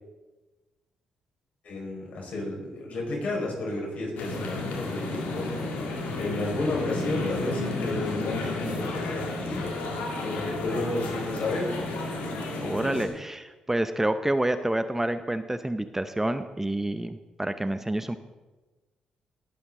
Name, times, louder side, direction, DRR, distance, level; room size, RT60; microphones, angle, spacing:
voice 1, 1.6-5.5 6.1-9.7 10.2-11.7, left 2 dB, 60° left, -1 dB, 4.9 m, -32 dB
sound 1, 4.2-13.1, left 2 dB, 75° left, 2.2 m, -32 dB
voice 2, 12.6-18.2, right 1 dB, 15° right, 10 dB, 0.6 m, -28 dB
18.5 x 7.9 x 3.8 m, 1.2 s
hypercardioid pair, 50°, 3 cm